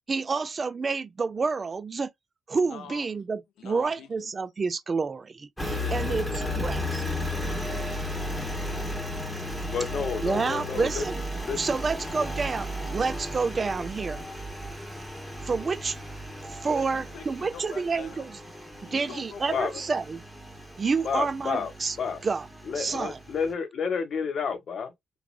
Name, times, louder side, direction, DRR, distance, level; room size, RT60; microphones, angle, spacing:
voice 1, 0.1-2.1 2.5-6.3 6.5-7.0 10.2-11.2 11.6-14.2 15.4-16.0 16.4-18.3 18.9-20.2 20.8-22.0 22.2-22.5 22.8-23.2, right 4 dB, 40° right, 0.4 m, -29 dB
voice 2, 2.6-3.1 3.6-4.3 5.6-8.6 16.4-18.3 18.8-20.0 22.9-23.1, left 7 dB, 75° left, 0.4 m, -45 dB
Engine, 5.6-23.5, left 1 dB, ahead, 1.1 m, -35 dB
voice 3, 9.7-11.0 11.5-11.6 12.2-12.3 19.5-19.7 21.0-21.7 22.0-22.2 22.6-25.2, left 6 dB, 60° left, 0.8 m, -30 dB
3.1 x 2.2 x 2.5 m
supercardioid pair, 60°, 0 cm